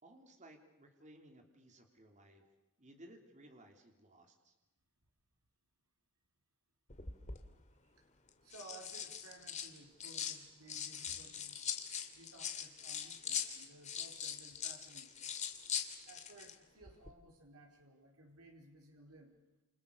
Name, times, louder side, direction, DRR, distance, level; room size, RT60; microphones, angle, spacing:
voice 1, 0.0-2.4 2.8-4.5, right 1 dB, 35° right, 4 dB, 3.5 m, -59 dB
voice 2, 2.2-2.5 7.8-8.1 8.4-11.6 12.1-15.3 16.1-19.4, right 2 dB, 85° right, 1 dB, 4.4 m, -58 dB
sound 1, 6.9-7.4 8.3-10.4 10.7-16.5 16.8-17.1, left 8 dB, 30° left, 2.5 m, -42 dB
30.0 x 29.0 x 6.9 m, 1.1 s
head